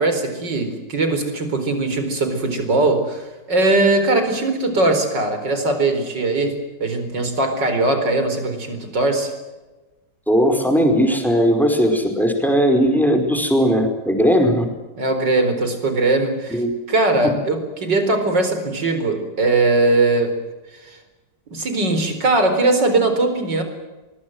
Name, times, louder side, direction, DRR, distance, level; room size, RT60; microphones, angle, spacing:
voice 1, 0.0-6.5 6.8-9.3 15.0-16.6 16.9-20.3 20.9-21.0 21.5-23.6, right 2 dB, 80° right, 7 dB, 5.0 m, -20 dB
voice 2, 10.3-14.7 16.5-16.7, equal, ahead, 4 dB, 4.8 m, -17 dB
24.0 x 22.0 x 8.0 m, 1.1 s
omnidirectional pair, 1.9 m